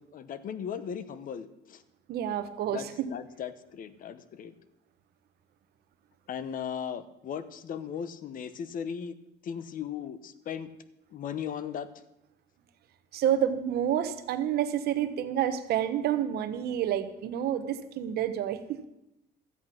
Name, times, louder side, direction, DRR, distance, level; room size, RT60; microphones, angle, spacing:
voice 1, 0.0-1.8 2.7-4.6 6.3-9.1 9.4-10.7 11.1-11.9, left 8 dB, 55° left, 14 dB, 1.0 m, -37 dB
voice 2, 2.1-3.1 13.1-18.8, right 10 dB, 70° right, 10 dB, 1.1 m, -29 dB
13.5 x 8.5 x 6.0 m, 0.90 s
cardioid pair, 110°, 17 cm